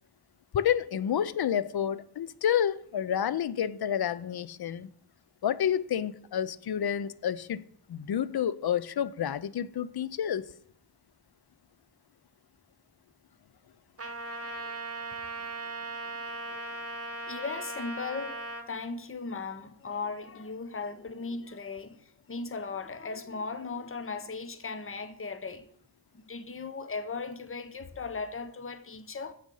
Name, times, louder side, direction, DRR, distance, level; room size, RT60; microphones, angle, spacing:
voice 1, 0.5-4.9 5.4-7.6 7.9-10.5, left 9 dB, 60° left, 0.6 m, -29 dB
Trumpet, 14.0-18.7, right 2 dB, 35° right, 1.3 m, -38 dB
voice 2, 14.5-15.1 16.5-16.6 17.3-25.7 26.1-29.3, left 4 dB, 30° left, 0.8 m, -38 dB
7.8 x 6.3 x 5.5 m
cardioid pair, 55°, 43 cm